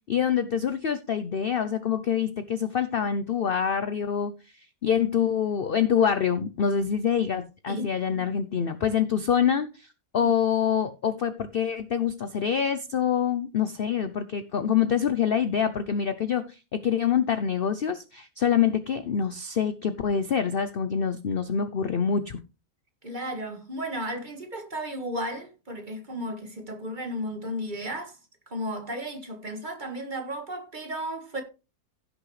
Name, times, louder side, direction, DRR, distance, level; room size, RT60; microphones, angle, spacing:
voice 1, 0.1-22.4, left 8 dB, 60° left, 0.6 m, -26 dB
voice 2, 23.0-28.2 28.5-31.4, equal, 30° right, 1.7 m, -34 dB
16.0 x 6.3 x 3.2 m
omnidirectional pair, 1.7 m